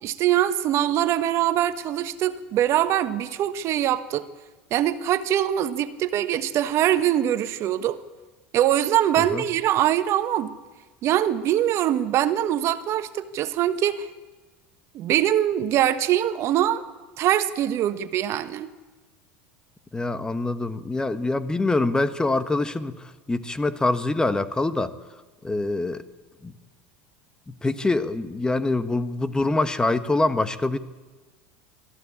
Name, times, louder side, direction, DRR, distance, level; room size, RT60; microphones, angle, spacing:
voice 1, 0.0-4.2 4.7-8.0 8.5-10.5 11.0-14.1 14.9-16.8 17.2-18.7, right 11 dB, 50° right, 11 dB, 1.2 m, -23 dB
voice 2, 19.9-24.9 25.4-26.0 26.4-26.5 27.5-30.8, left 2 dB, 15° left, 11 dB, 1.3 m, -25 dB
23.0 x 14.5 x 8.6 m, 1.2 s
hypercardioid pair, 95°, 6 cm